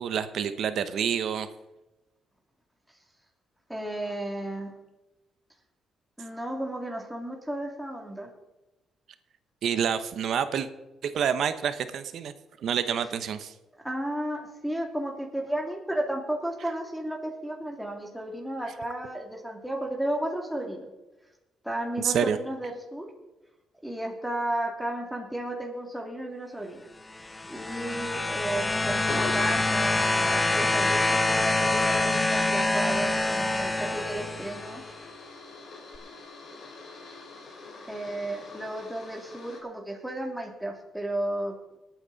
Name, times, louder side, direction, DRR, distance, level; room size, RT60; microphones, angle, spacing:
voice 1, 0.0-1.5 9.6-10.7 11.0-12.3 12.6-13.5 22.0-22.4, right 8 dB, 65° right, 11 dB, 0.9 m, -28 dB
voice 2, 3.7-4.7 6.2-8.3 13.8-20.9 21.6-23.1 23.8-26.9 27.5-34.8 37.9-41.5, right 1 dB, 5° right, 1 dB, 2.5 m, -33 dB
sound 1, 27.1-34.9 35.9-36.0, left 2 dB, 15° left, 0.9 m, -26 dB
sound 2, 28.7-39.6, left 3 dB, 50° left, 3.7 m, -43 dB
19.5 x 9.2 x 4.1 m, 1.0 s
cardioid pair, 90°, 0 cm